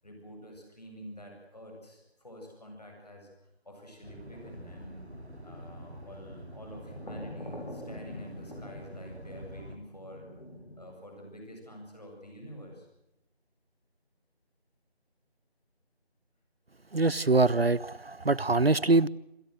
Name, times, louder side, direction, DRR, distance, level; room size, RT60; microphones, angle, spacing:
voice 1, 0.0-3.3 3.6-5.1 5.4-10.3 10.8-12.9, equal, 40° left, 8.0 m, -47 dB
sound 1, 4.0-9.8, equal, 80° right, 3.5 m, -47 dB
sound 2, 5.0-10.9, left 1 dB, 55° left, 7.8 m, -46 dB
voice 2, 16.9-19.1, right 3 dB, 65° right, 0.8 m, -24 dB
27.0 x 17.0 x 8.0 m
figure-of-eight pair, 175°, 32 cm